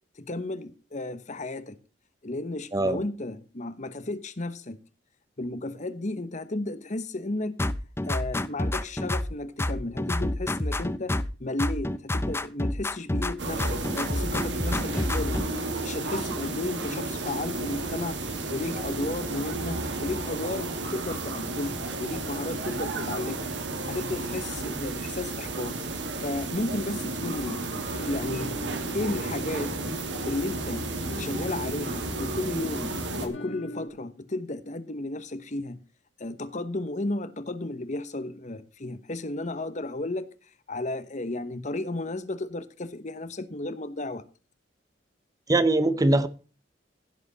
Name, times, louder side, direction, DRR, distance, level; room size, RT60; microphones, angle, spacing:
voice 1, 0.2-1.8 2.2-4.8 5.4-7.6 8.1-15.4 15.8-18.2 18.5-23.5 23.9-25.8 26.2-27.6 28.0-28.6 28.9-29.7 30.2-30.8 31.2-33.0 33.2-35.8 36.2-40.3 40.7-44.2, left 2 dB, 40° left, 1.1 m, -33 dB
voice 2, 2.7-3.1 45.5-46.3, right 2 dB, 20° right, 0.7 m, -22 dB
sound 1, 7.6-9.3 9.6-11.3 11.6-13.3 13.6-15.5, left 1 dB, 15° left, 0.6 m, -28 dB
sound 2, 13.4-33.3, right 2 dB, 75° right, 2.2 m, -32 dB
sound 3, 27.3-33.9, left 1 dB, 85° left, 2.2 m, -41 dB
16.0 x 7.8 x 4.1 m
head